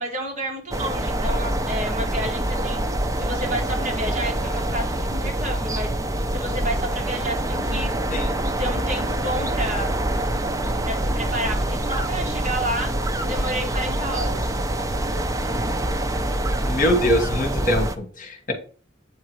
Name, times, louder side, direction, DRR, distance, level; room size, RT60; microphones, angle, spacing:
voice 1, 0.0-5.9 6.3-7.9 8.6-9.9 10.8-12.9 13.2-14.5, right 1 dB, 40° right, 0 dB, 2.1 m, -30 dB
sound 1, 0.7-18.0, right 1 dB, 20° right, 0.5 m, -25 dB
voice 2, 16.6-18.5, left 1 dB, 45° left, 5 dB, 1.4 m, -23 dB
8.3 x 3.8 x 4.6 m, 0.40 s
head